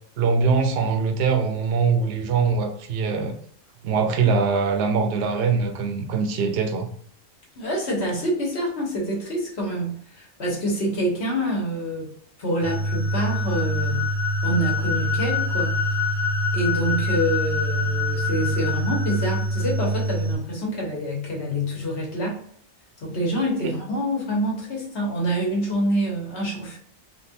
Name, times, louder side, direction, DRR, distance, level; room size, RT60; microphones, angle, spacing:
voice 1, 0.2-3.3 3.8-6.9 23.6-23.7, right 5 dB, 65° right, 5 dB, 0.7 m, -22 dB
voice 2, 7.6-12.1 12.4-14.1 14.4-15.8 16.5-22.4 23.0-26.8, equal, 60° left, -2 dB, 1.2 m, -26 dB
sound 1, 12.6-20.4, left 1 dB, ahead, 0.8 m, -24 dB
3.5 x 2.3 x 2.8 m, 0.62 s
omnidirectional pair, 1.3 m